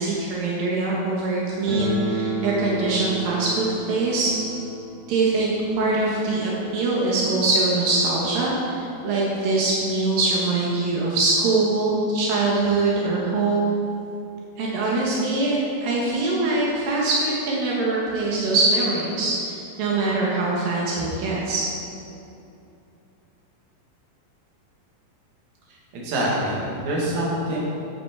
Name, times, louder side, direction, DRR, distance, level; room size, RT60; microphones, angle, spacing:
voice 1, 0.0-4.3 5.1-13.8 14.6-21.6, right 3 dB, 80° right, -5 dB, 3.1 m, -23 dB
sound 1, 1.7-8.4 8.6-8.7 9.0-9.1 9.8-9.9 10.2-11.4, right 2 dB, 30° right, 3.2 m, -34 dB
voice 2, 25.9-27.6, right 1 dB, 55° right, -5 dB, 3.3 m, -25 dB
12.0 x 8.8 x 4.6 m, 2.7 s
omnidirectional pair, 4.0 m